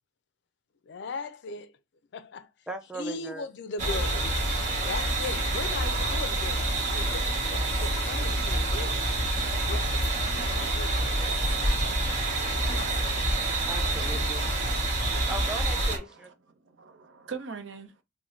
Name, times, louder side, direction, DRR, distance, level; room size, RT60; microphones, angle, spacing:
voice 1, 0.9-1.7 2.1-2.5 2.9-4.3 4.8-9.0 9.7-10.0 10.5-11.0, left 3 dB, 65° left, 0.4 m, -38 dB
voice 2, 2.7-3.5 13.7-14.6 15.3-16.3, right 1 dB, 5° right, 0.5 m, -38 dB
sound 1, 3.8-16.0, right 2 dB, 40° right, 1.2 m, -27 dB
voice 3, 14.2-15.3 16.0-16.3 16.6-17.9, right 5 dB, 80° right, 0.6 m, -43 dB
3.8 x 2.1 x 3.1 m
head